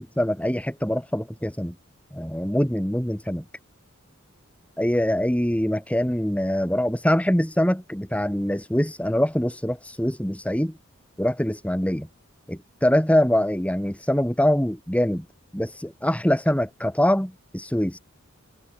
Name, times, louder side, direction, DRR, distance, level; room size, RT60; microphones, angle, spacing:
voice 1, 0.0-1.7 2.1-3.4 4.8-10.8 11.2-12.1 12.5-15.3 15.5-18.0, equal, 5° left, 2.9 m, -24 dB
head